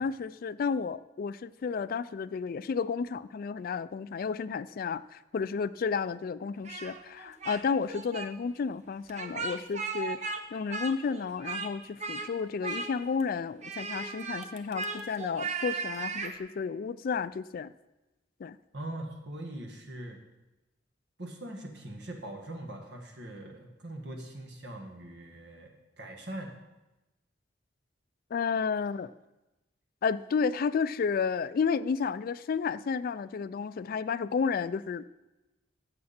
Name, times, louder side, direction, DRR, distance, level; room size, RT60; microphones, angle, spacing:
voice 1, 0.0-17.7 18.4-18.6 28.3-29.1 30.0-35.0, left 5 dB, 50° left, 16 dB, 0.3 m, -32 dB
Speech, 6.6-7.6 7.9-8.3 9.1-10.4 10.7-11.7 12.0-12.3 12.6-13.2 13.6-16.4, right 4 dB, 40° right, 0.8 m, -36 dB
voice 2, 18.7-20.2 21.2-26.5, right 1 dB, 65° right, 2 dB, 1.8 m, -42 dB
14.0 x 7.6 x 4.3 m, 1.0 s
head